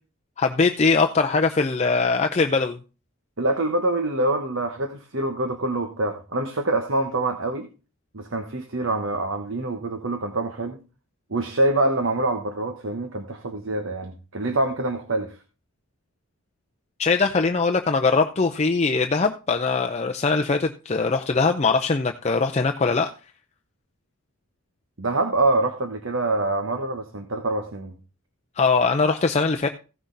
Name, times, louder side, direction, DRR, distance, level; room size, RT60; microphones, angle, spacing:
voice 1, 0.4-2.8 17.0-23.1 28.6-29.7, left 4 dB, 30° left, 5 dB, 0.5 m, -21 dB
voice 2, 3.4-7.7 8.1-10.8 11.3-15.4 25.0-27.9, right 2 dB, 60° right, 6 dB, 1.2 m, -25 dB
16.0 x 6.2 x 3.9 m, 0.33 s
head